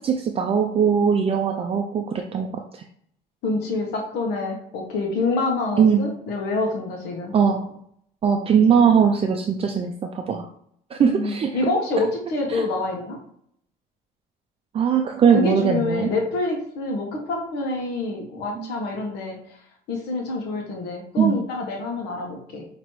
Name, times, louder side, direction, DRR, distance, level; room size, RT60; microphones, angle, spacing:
voice 1, 0.0-2.8 5.8-6.0 7.3-7.8 8.2-10.5 10.9-11.7 12.5-12.7 14.7-16.1 18.6-18.7 21.2-21.4, right 7 dB, 35° right, 3 dB, 0.5 m, -20 dB
voice 2, 3.4-7.3 11.0-13.2 15.3-19.4 19.9-22.6, left 2 dB, 80° left, 1 dB, 1.1 m, -26 dB
5.8 x 2.9 x 3.1 m, 0.67 s
cardioid pair, 110°, 17 cm